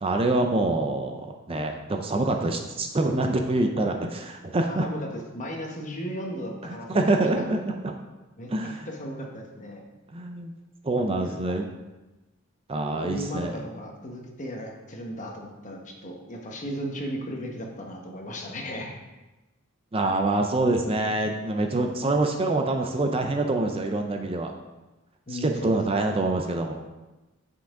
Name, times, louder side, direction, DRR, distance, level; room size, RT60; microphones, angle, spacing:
voice 1, 0.0-4.9 6.6-7.9 8.5-8.9 10.1-10.5 10.8-11.7 12.7-13.5 19.9-24.5 25.3-26.7, right 2 dB, 25° right, 4 dB, 0.5 m, -26 dB
voice 2, 4.7-5.1 5.3-7.0 7.4-7.5 8.4-9.9 11.2-11.4 13.0-18.9 25.3-26.1, equal, 35° left, 1 dB, 1.2 m, -36 dB
7.6 x 5.8 x 3.7 m, 1.1 s
head